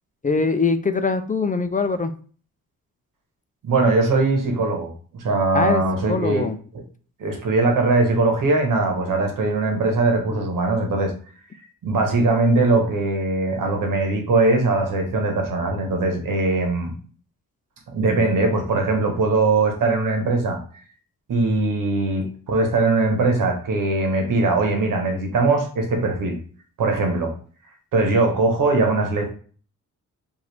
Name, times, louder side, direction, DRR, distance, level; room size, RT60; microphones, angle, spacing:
voice 1, 0.2-2.1 5.5-5.8 6.1-6.5, left 4 dB, 25° left, 8 dB, 0.4 m, -22 dB
voice 2, 3.6-6.5 7.2-11.1 11.8-17.0 17.9-20.6 21.3-26.4 26.8-27.3 27.9-29.3, right 3 dB, 85° right, 3 dB, 1.2 m, -21 dB
4.8 x 2.7 x 3.3 m, 0.42 s
cardioid pair, 80°, 32 cm